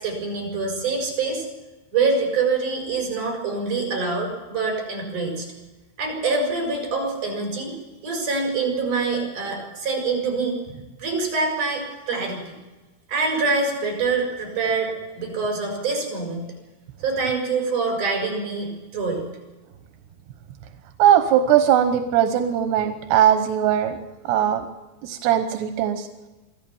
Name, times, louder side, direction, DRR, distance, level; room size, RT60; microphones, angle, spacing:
voice 1, 0.0-1.5 1.9-5.5 6.0-7.7 8.0-10.6 11.0-12.5 13.1-16.5 17.0-19.3, right 4 dB, 50° right, 1 dB, 7.8 m, -25 dB
voice 2, 21.0-24.0 24.3-24.7 25.0-26.1, right 10 dB, 90° right, 7 dB, 3.2 m, -19 dB
25.0 x 14.5 x 7.2 m, 1.1 s
omnidirectional pair, 4.6 m